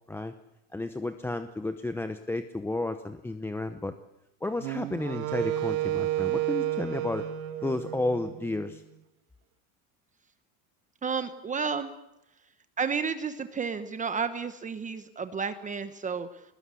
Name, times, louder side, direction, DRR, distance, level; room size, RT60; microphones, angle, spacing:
voice 1, 0.7-3.9 4.4-7.3 7.6-8.8, left 2 dB, 5° left, 9 dB, 0.8 m, -32 dB
Wind instrument woodwind instrument, 4.6-8.8, right 14 dB, 90° right, 2.0 m, -31 dB
voice 2, 11.0-11.9 12.8-16.4, right 5 dB, 20° right, 10 dB, 1.0 m, -31 dB
21.5 x 20.5 x 8.4 m, 0.89 s
cardioid pair, 150°, 40 cm